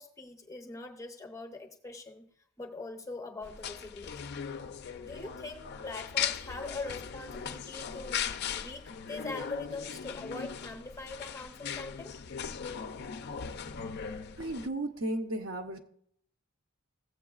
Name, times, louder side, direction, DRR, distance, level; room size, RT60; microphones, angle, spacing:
voice 1, 0.0-2.3 2.6-4.3 5.0-8.2 8.5-12.2, left 3 dB, 15° left, 4 dB, 0.7 m, -42 dB
sound 1, 3.4-14.7, left 7 dB, 50° left, 0.4 m, -38 dB
voice 2, 14.4-15.8, right 1 dB, 60° right, 4 dB, 0.9 m, -34 dB
15.0 x 7.7 x 2.4 m, 0.65 s
head